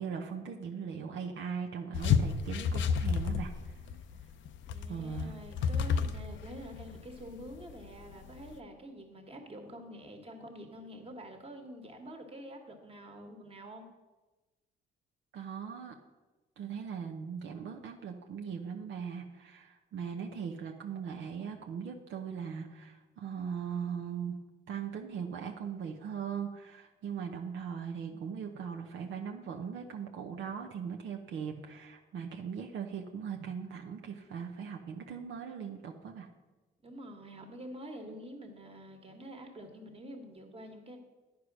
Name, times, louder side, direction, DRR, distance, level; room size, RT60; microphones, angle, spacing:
voice 1, 0.0-3.8 4.9-5.3 15.3-16.0 16.6-24.4 24.7-36.3, right 7 dB, 75° right, 2 dB, 0.8 m, -39 dB
sound 1, 1.9-8.6, left 6 dB, 75° left, 0.6 m, -31 dB
voice 2, 4.7-13.9 36.8-41.0, equal, 30° right, 4 dB, 1.6 m, -47 dB
9.8 x 4.8 x 6.1 m, 1.2 s
cardioid pair, 90°, 20 cm